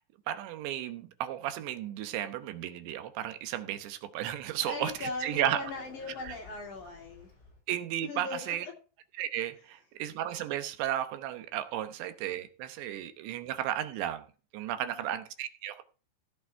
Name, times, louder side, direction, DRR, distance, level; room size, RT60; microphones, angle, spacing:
voice 1, 0.3-5.6 6.3-6.4 7.7-8.7 9.2-14.2 14.5-15.8, right 12 dB, 80° right, 3.2 m, -34 dB
voice 2, 4.6-7.3 8.0-8.7 14.7-15.1, left 3 dB, 50° left, 3.6 m, -40 dB
Sliding door, 4.6-7.6, left 2 dB, 30° left, 7.4 m, -54 dB
16.0 x 6.2 x 4.6 m
omnidirectional pair, 5.1 m